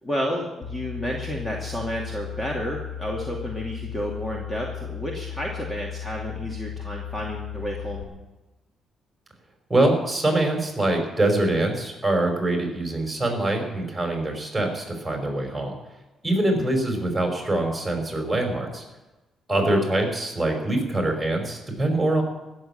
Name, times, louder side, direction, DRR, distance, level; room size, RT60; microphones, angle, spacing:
voice 1, 0.0-8.1 16.5-16.7 19.7-19.9, equal, 15° left, -1 dB, 2.5 m, -31 dB
sound 1, 0.6-8.0, left 9 dB, 45° left, 2.2 m, -36 dB
voice 2, 9.7-15.8 16.2-18.8 19.5-22.2, right 1 dB, 10° right, 2 dB, 5.1 m, -24 dB
15.5 x 7.5 x 9.9 m, 1.1 s
cardioid pair, 90°, 0 cm